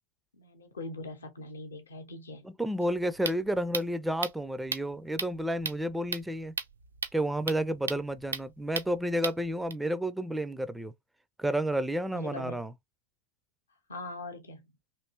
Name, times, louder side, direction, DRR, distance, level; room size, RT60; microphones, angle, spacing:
voice 1, 0.3-2.5 12.1-12.6 13.9-14.7, left 2 dB, 70° left, 0.7 m, -41 dB
voice 2, 2.4-6.5 7.1-10.9 11.4-12.7, right 1 dB, 5° right, 0.4 m, -31 dB
sound 1, 2.8-9.7, right 5 dB, 75° right, 0.4 m, -38 dB
3.1 x 2.8 x 2.8 m
figure-of-eight pair, 90°, 0 cm